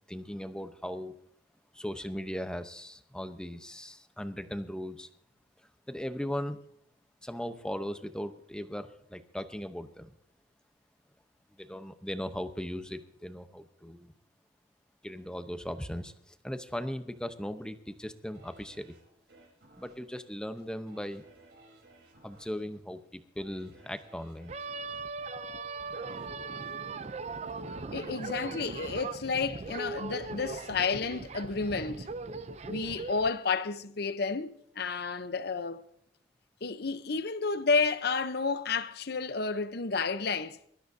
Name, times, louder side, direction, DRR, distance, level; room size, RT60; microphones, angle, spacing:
voice 1, 0.1-1.2 1.7-5.1 5.9-6.6 7.2-10.1 11.6-14.1 15.0-18.9 19.8-21.2 22.2-24.5, equal, 5° left, 0.8 m, -38 dB
sound 1, 18.3-29.3 29.7-29.8, right 2 dB, 65° right, 3.8 m, -60 dB
sound 2, 24.5-33.3, right 3 dB, 40° right, 0.6 m, -39 dB
voice 2, 27.9-32.1 32.6-35.8 36.6-40.6, left 4 dB, 60° left, 0.8 m, -31 dB
23.5 x 13.0 x 2.7 m
head